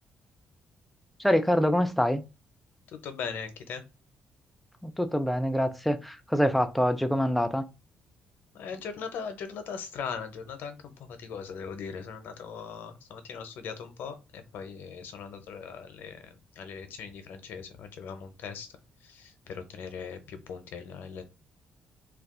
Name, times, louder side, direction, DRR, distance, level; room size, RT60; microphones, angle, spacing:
voice 1, 1.2-2.2 4.8-7.7, equal, ahead, 0.3 m, -25 dB
voice 2, 2.9-3.8 8.5-18.7 19.0-21.2, left 6 dB, 75° left, 0.6 m, -40 dB
2.4 x 2.3 x 3.6 m
cardioid pair, 130°, 3 cm